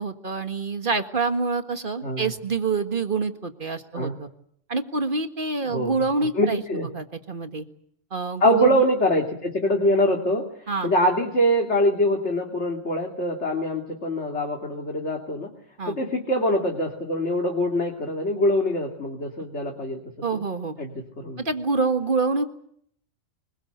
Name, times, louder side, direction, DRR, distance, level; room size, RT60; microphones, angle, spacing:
voice 1, 0.0-4.3 4.7-7.7 8.1-8.8 10.7-10.9 15.8-16.0 20.2-20.7 21.4-22.5, right 4 dB, 40° right, 7 dB, 1.8 m, -26 dB
voice 2, 6.3-6.9 8.4-15.5 15.9-20.0 20.3-20.4 20.8-20.9 21.2-21.4, left 1 dB, 60° left, 1 dB, 3.0 m, -24 dB
25.5 x 21.5 x 8.0 m, 0.67 s
omnidirectional pair, 1.3 m